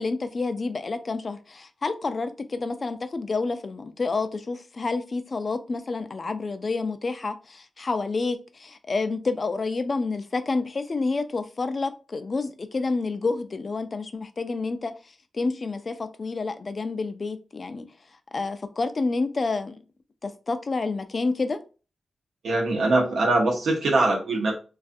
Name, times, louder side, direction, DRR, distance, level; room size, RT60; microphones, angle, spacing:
voice 1, 0.0-17.9 18.3-19.8 20.2-21.6, left 3 dB, 50° left, 0.3 m, -29 dB
voice 2, 22.4-24.6, right 2 dB, 85° right, 0.8 m, -22 dB
2.4 x 2.3 x 2.5 m
cardioid pair, 65°, 0 cm